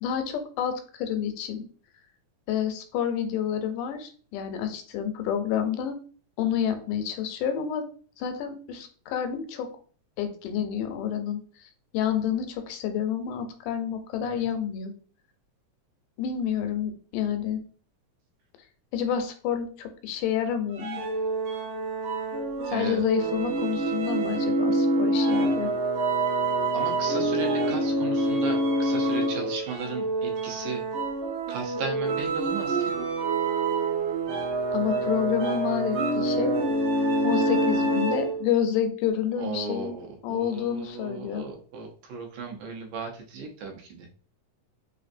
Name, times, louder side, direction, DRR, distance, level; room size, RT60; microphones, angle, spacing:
voice 1, 0.0-1.6 2.5-6.0 6.4-7.9 8.2-9.7 10.2-11.4 11.9-14.9 16.2-17.6 18.9-21.0 22.7-25.7 34.7-36.6 37.2-39.9 40.2-41.4, left 9 dB, 90° left, 8 dB, 2.1 m, -29 dB
sound 1, 20.7-38.5, right 2 dB, 70° right, 1.3 m, -26 dB
voice 2, 22.7-23.0 26.7-30.8 31.5-32.9 39.4-44.1, right 4 dB, 90° right, 1 dB, 2.4 m, -36 dB
5.5 x 2.6 x 2.5 m, 0.42 s
omnidirectional pair, 3.5 m